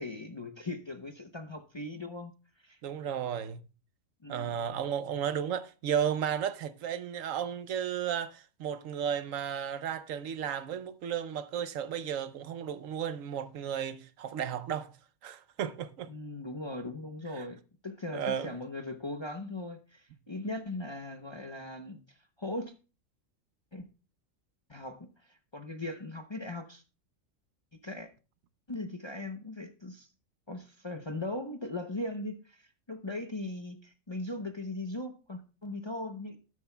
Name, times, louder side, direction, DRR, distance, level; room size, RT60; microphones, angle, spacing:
voice 1, 0.0-2.3 2.6-2.8 4.2-4.7 16.1-22.7 23.7-23.9 24.7-26.8 27.8-28.1 28.7-30.1 30.5-36.4, left 2 dB, 30° left, 0.6 m, -39 dB
voice 2, 2.8-3.6 4.3-14.9 15.2-16.1 17.4-17.5 18.1-18.5, right 8 dB, 80° right, 1.1 m, -34 dB
13.0 x 9.3 x 2.2 m
omnidirectional pair, 1.3 m